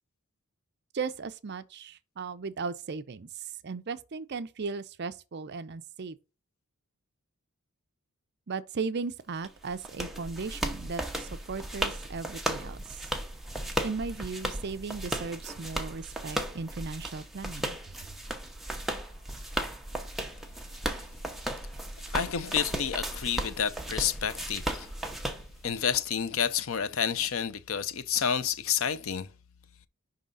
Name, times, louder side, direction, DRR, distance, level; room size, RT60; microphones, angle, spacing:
voice 1, 0.9-3.3 3.6-6.2 8.5-13.0 13.8-17.8, right 4 dB, 50° right, 0.5 m, -36 dB
sound 1, 9.4-26.0, right 1 dB, ahead, 0.8 m, -36 dB
voice 2, 22.1-24.9 25.6-29.3, left 7 dB, 60° left, 0.6 m, -29 dB
5.5 x 3.8 x 5.3 m
head